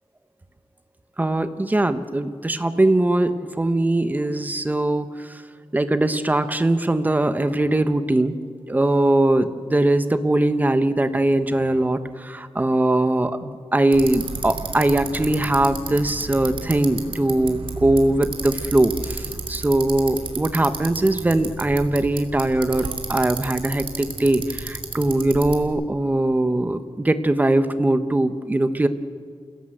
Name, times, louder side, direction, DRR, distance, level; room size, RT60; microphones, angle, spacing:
voice 1, 1.2-5.4 5.7-8.4 8.7-28.9, right 1 dB, 15° right, 10 dB, 1.0 m, -21 dB
Bicycle, 13.9-25.7, right 4 dB, 65° right, 2.8 m, -33 dB
28.5 x 17.0 x 7.9 m, 2.1 s
wide cardioid pair, 165°, 10 cm